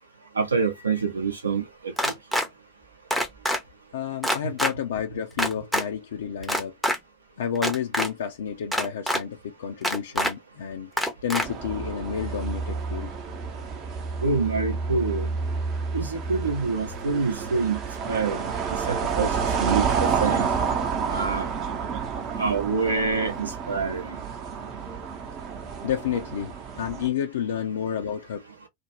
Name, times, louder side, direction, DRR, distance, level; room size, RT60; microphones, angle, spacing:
voice 1, 0.4-1.9 14.2-15.3 15.9-17.8 18.1-18.5 18.9-19.3 19.6-20.5 21.1-21.5 22.4-24.2, right 4 dB, 75° right, 0.7 m, -26 dB
sound 1, 2.0-2.5 3.1-3.6 4.2-4.7 5.4-5.8 6.4-7.0 7.6-8.1 8.7-9.2 9.8-10.3 11.0-11.5, equal, ahead, 0.6 m, -24 dB
voice 2, 3.9-6.8 7.4-10.9 11.2-13.1 25.8-28.4, left 8 dB, 60° left, 0.4 m, -30 dB
sound 2, 11.4-27.1, right 5 dB, 35° right, 0.7 m, -29 dB
2.4 x 2.1 x 3.0 m
figure-of-eight pair, 90°, 0 cm